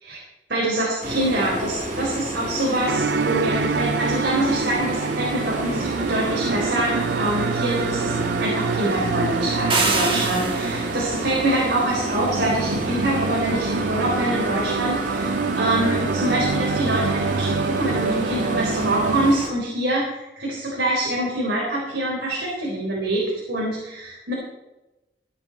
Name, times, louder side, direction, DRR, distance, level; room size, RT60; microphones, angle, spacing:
voice 1, 0.5-8.1 8.4-24.3, right 1 dB, 80° right, -4 dB, 4.3 m, -25 dB
sound 1, 1.0-19.5, right 1 dB, 45° right, 2.4 m, -30 dB
sound 2, 2.9-19.4, right 4 dB, 65° right, 0.5 m, -26 dB
sound 3, 9.7-11.0, right 3 dB, 30° right, 2.5 m, -24 dB
17.5 x 10.5 x 4.3 m, 0.99 s
head